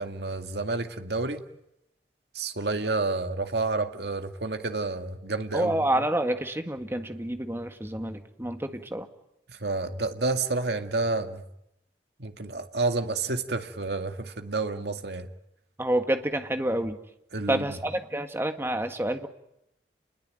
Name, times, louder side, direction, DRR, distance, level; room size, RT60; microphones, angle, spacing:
voice 1, 0.0-1.4 2.3-6.0 9.5-11.4 12.2-15.3 17.3-17.7, right 3 dB, 65° right, 6 dB, 2.1 m, -30 dB
voice 2, 5.5-9.1 15.8-17.0 17.5-19.3, right 1 dB, 15° right, 6 dB, 1.8 m, -28 dB
29.5 x 21.0 x 9.1 m, 0.84 s
head